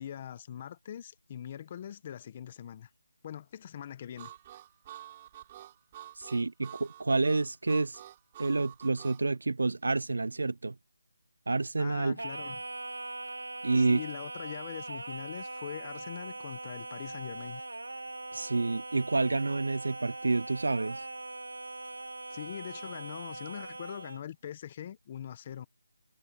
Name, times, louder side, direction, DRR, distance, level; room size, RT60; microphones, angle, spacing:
voice 1, 0.0-2.9 3.2-4.3 11.8-12.6 13.8-17.6 22.3-25.7, left 10 dB, 25° left, 0.9 m, -42 dB
Harmonica, 4.2-9.2, right 12 dB, 20° right, 6.1 m, -49 dB
voice 2, 6.2-8.0 8.4-10.8 11.5-12.2 13.6-14.0 18.3-21.0, right 3 dB, 70° right, 0.4 m, -29 dB
Singing, 12.2-24.2, right 2 dB, 85° right, 1.5 m, -41 dB
figure-of-eight pair, 170°, 0 cm